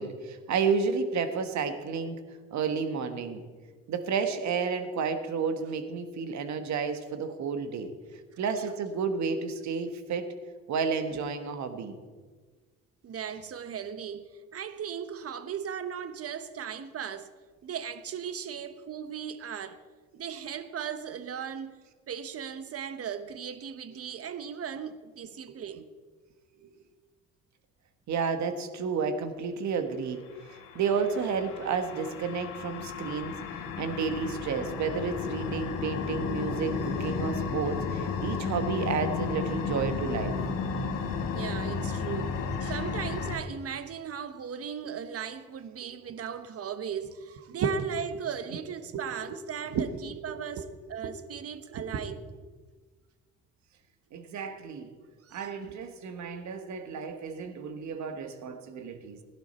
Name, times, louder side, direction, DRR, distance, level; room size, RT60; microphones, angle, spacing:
voice 1, 0.0-2.2 2.5-3.4 3.9-7.9 8.4-10.3 10.7-12.0 26.6-26.7 28.1-30.2 30.5-40.4 42.2-42.3 47.6-47.7 48.9-49.0 49.3-49.4 49.7-49.9 50.3-50.6 51.0-51.1 51.7-52.0 54.1-54.9 55.3-59.2, right 5 dB, 65° right, 1.5 m, -31 dB
voice 2, 13.0-17.3 17.6-19.8 20.1-21.8 22.1-25.8 41.3-52.2 55.2-55.8, right 8 dB, 50° right, 1.2 m, -37 dB
sound 1, 30.5-43.4, left 5 dB, 80° left, 1.7 m, -33 dB
16.5 x 11.0 x 4.4 m
supercardioid pair, 70°, 31 cm